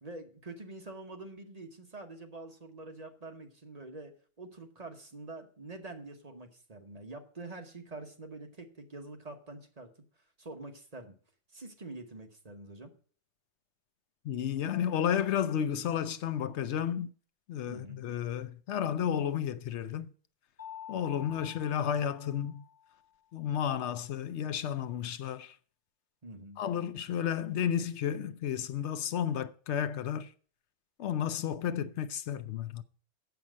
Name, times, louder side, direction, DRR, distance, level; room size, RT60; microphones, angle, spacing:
voice 1, 0.0-9.9 10.4-11.1 11.5-12.9 17.7-18.0 21.2-21.4 26.2-26.6, right 2 dB, 35° right, 1.2 m, -46 dB
voice 2, 14.2-17.1 17.5-20.1 20.9-22.6 23.3-25.5 26.6-30.3 31.0-32.8, left 9 dB, 75° left, 0.9 m, -32 dB
Mallet percussion, 20.6-23.1, left 9 dB, 35° left, 1.5 m, -48 dB
7.9 x 5.8 x 7.3 m
omnidirectional pair, 1.2 m